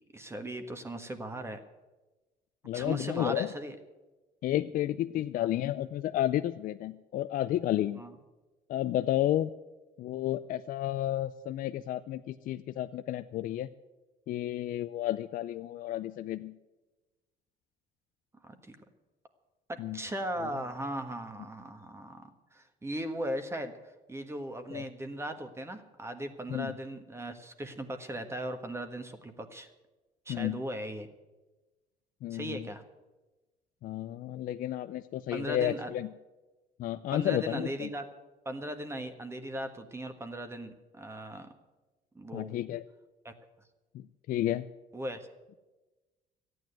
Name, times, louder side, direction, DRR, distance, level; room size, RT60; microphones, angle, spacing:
voice 1, 0.1-1.6 2.7-3.8 5.4-5.5 7.9-8.1 18.5-18.7 19.7-23.7 24.1-29.7 30.2-31.1 32.3-32.8 35.3-35.9 37.1-38.1 38.4-41.5 42.1-42.5 43.2-43.3 44.9-45.2, right 1 dB, 15° right, 8 dB, 1.5 m, -38 dB
voice 2, 2.6-3.5 4.4-8.0 8.7-9.5 10.0-13.7 14.3-16.5 19.8-20.0 24.7-24.8 26.5-26.7 30.3-30.6 32.2-32.7 33.8-36.1 36.8-37.9 42.3-42.8 43.9-44.7, left 13 dB, 65° left, 10 dB, 0.5 m, -31 dB
13.5 x 9.4 x 9.2 m, 1.1 s
cardioid pair, 100°, 16 cm